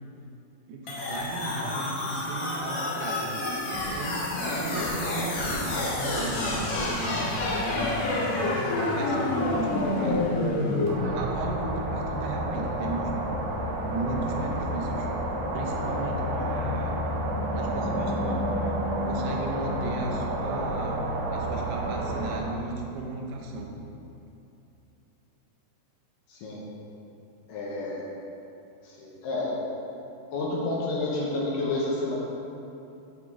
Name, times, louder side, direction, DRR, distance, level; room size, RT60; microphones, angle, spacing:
voice 1, 0.7-3.4 3.7-8.6 8.9-10.2 11.1-15.1 15.5-17.0 17.5-18.7 19.0-21.0 21.3-23.7, right 2 dB, 85° right, 0 dB, 2.9 m, -35 dB
sound 1, 0.9-10.9, left 2 dB, 90° left, 1.3 m, -28 dB
sound 2, 10.9-22.4, right 1 dB, 70° right, 2.3 m, -30 dB
voice 2, 26.3-26.7 27.5-28.0 28.8-29.6 30.3-32.2, left 2 dB, 75° left, -4 dB, 2.3 m, -30 dB
8.6 x 5.9 x 3.6 m, 2.8 s
omnidirectional pair, 4.6 m